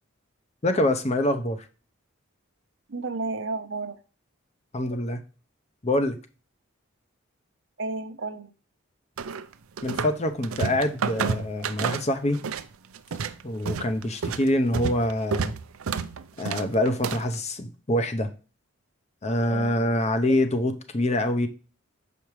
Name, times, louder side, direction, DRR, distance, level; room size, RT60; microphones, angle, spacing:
voice 1, 0.6-1.7 4.7-5.2 5.8-6.2 9.8-12.4 13.4-15.5 16.4-18.3 19.2-21.5, left 1 dB, 30° left, 0.7 m, -25 dB
voice 2, 2.9-4.0 7.8-8.5 19.5-19.8, right 3 dB, 60° right, 0.8 m, -32 dB
sound 1, 9.2-10.2 10.4-12.7 12.9-17.3, right 6 dB, 90° right, 0.5 m, -30 dB
6.9 x 5.2 x 3.1 m
head